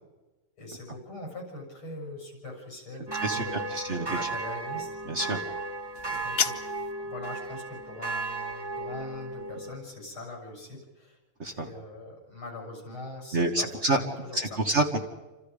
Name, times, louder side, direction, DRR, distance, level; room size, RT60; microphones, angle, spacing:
voice 1, 0.6-4.9 6.0-6.6 7.0-11.2 11.5-13.7 13.9-14.6, left 2 dB, 80° left, 1 dB, 7.8 m, -42 dB
sound 1, 3.1-9.8, right 3 dB, 15° right, 0.9 m, -35 dB
voice 2, 3.2-4.0 5.1-5.4 11.4-11.7 13.3-14.0 14.3-15.0, right 2 dB, 35° right, 4 dB, 1.6 m, -27 dB
sound 2, 5.9-7.0, left 7 dB, 55° left, 0.6 m, -31 dB
28.5 x 26.5 x 5.1 m, 1.2 s
omnidirectional pair, 2.3 m